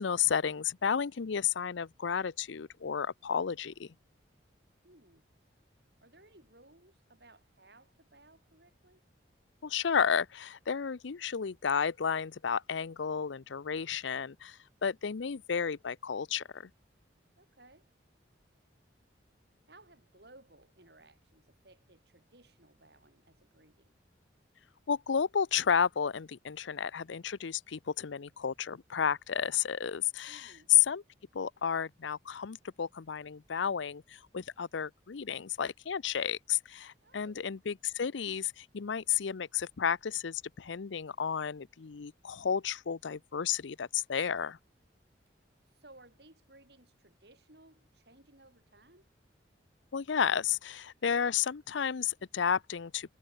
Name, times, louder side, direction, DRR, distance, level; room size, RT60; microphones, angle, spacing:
voice 1, 0.0-3.9 9.6-16.7 24.9-31.0 31.3-44.6 49.9-53.1, left 7 dB, 80° left, 0.6 m, -32 dB
voice 2, 4.8-5.3 6.0-9.0 17.4-17.9 19.7-24.0 30.3-30.7 37.0-37.4 45.7-49.1, right 2 dB, 60° right, 6.9 m, -60 dB
head